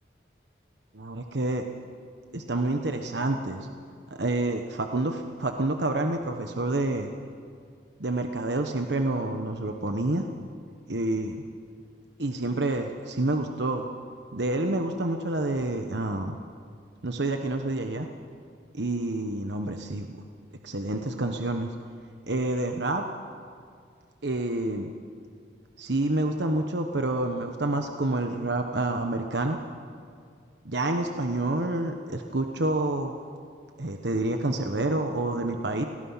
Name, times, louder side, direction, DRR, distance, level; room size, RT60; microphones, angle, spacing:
voice 1, 0.9-1.6 2.3-3.7 4.1-7.1 8.0-10.2 10.9-11.4 12.2-13.9 14.3-16.4 17.0-18.1 18.7-20.2 20.6-21.7 22.3-23.0 24.2-24.9 25.8-29.6 30.6-33.1 33.8-35.9, right 2 dB, 70° right, 4 dB, 1.2 m, -28 dB
27.5 x 19.0 x 5.8 m, 2.2 s
head